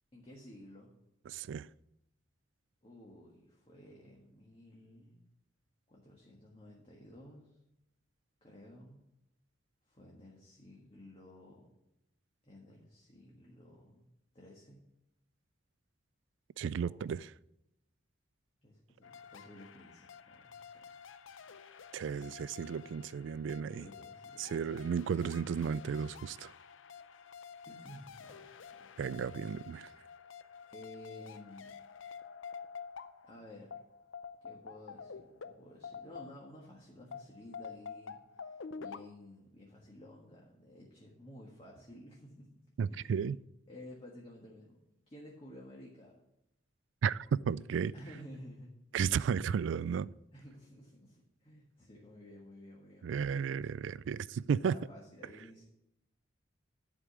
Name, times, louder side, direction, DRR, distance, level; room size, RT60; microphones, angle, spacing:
voice 1, 0.1-0.9 2.8-5.2 5.9-7.6 8.4-9.0 9.9-11.7 12.4-14.1 14.3-14.8 16.8-17.1 18.6-20.9 23.7-24.7 27.6-28.5 28.8-29.0 30.7-31.7 33.2-33.8 34.4-43.2 43.7-44.8 45.1-46.1 47.9-48.7 50.3-53.6 54.5-55.6, left 1 dB, 30° left, 1.6 m, -53 dB
voice 2, 1.3-1.7 16.6-17.2 21.9-23.9 24.4-26.5 29.0-29.9 42.8-43.4 47.0-47.2 47.5-47.9 48.9-50.1 53.0-54.7, right 7 dB, 70° right, 0.3 m, -34 dB
sound 1, 19.0-36.7 37.1-39.0, left 6 dB, 85° left, 0.6 m, -49 dB
11.0 x 5.0 x 7.1 m
head